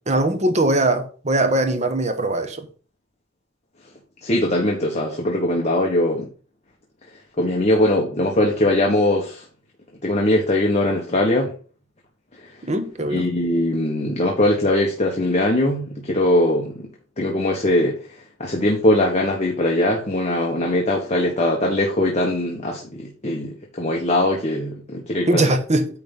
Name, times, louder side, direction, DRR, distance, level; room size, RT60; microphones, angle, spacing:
voice 1, 0.1-2.7 12.6-13.3 25.3-25.9, right 1 dB, 35° right, 1.1 m, -21 dB
voice 2, 4.2-6.3 7.4-9.4 10.0-11.5 13.1-16.9 17.2-17.9 18.4-25.6, left 1 dB, 35° left, 1.3 m, -21 dB
9.4 x 3.5 x 5.4 m
head